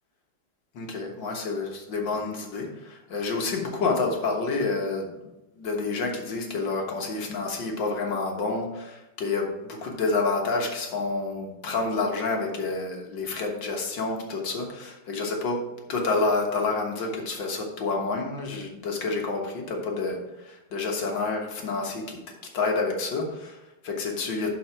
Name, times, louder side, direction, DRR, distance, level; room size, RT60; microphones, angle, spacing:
voice 1, 0.7-5.3 5.5-22.2 22.5-24.5, left 3 dB, 65° left, 1 dB, 2.0 m, -29 dB
11.0 x 4.9 x 4.4 m, 0.98 s
omnidirectional pair, 2.2 m